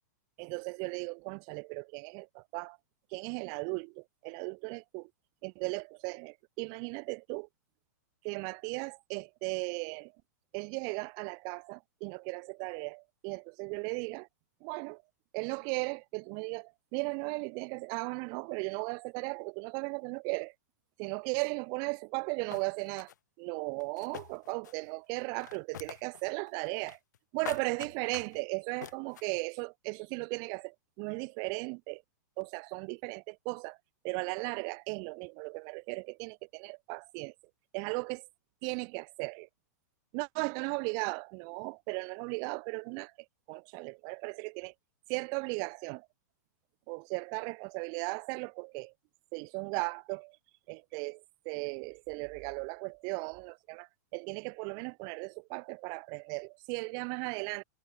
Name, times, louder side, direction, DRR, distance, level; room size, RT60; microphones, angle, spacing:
voice 1, 0.4-2.8 3.1-5.1 5.4-7.5 8.2-10.1 10.5-14.3 14.6-15.0 15.3-20.5 21.0-23.1 23.4-27.0 27.3-32.0 32.4-33.8 34.0-37.3 37.7-38.3 38.6-39.5 40.1-43.1 43.5-44.7 45.1-46.1 46.9-48.9 49.3-50.4 50.7-57.6, right 38 dB, 40° right, 1.5 m, -37 dB
sound 1, 22.1-22.2 22.5-23.1 23.8-24.9 25.2-26.2 26.5-27.2 27.4-28.4 28.8-29.3, left 10 dB, 80° left, 3.4 m, -45 dB
hypercardioid pair, 140°, 9 cm